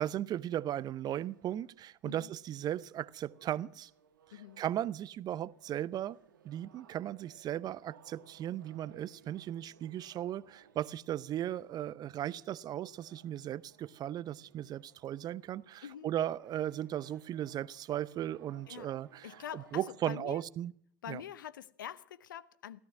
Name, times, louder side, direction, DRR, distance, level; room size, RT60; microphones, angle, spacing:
voice 1, 0.0-3.9 4.6-6.2 6.4-19.3 19.7-20.7 21.1-21.2, right 11 dB, 40° right, 0.6 m, -36 dB
sound 1, 1.1-20.0, right 7 dB, 80° right, 1.7 m, -63 dB
voice 2, 4.3-4.6 15.8-16.1 18.7-18.9 19.2-20.4 21.0-22.8, left 10 dB, 80° left, 0.8 m, -45 dB
16.0 x 14.0 x 6.0 m
hypercardioid pair, 80°, 11 cm